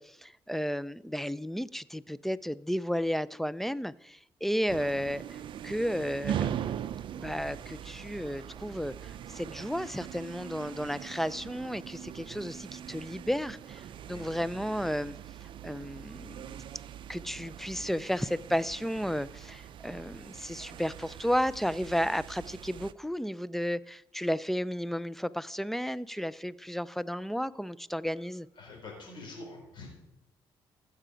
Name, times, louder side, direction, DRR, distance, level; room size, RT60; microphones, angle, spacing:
voice 1, 0.0-6.8 7.2-15.2 15.6-16.5 17.1-28.5, equal, 5° left, 0.3 m, -33 dB
sound 1, 4.7-22.9, right 10 dB, 60° right, 0.4 m, -41 dB
voice 2, 28.6-29.9, left 3 dB, 55° left, 4.1 m, -45 dB
15.0 x 6.7 x 5.0 m
cardioid pair, 95°, 9 cm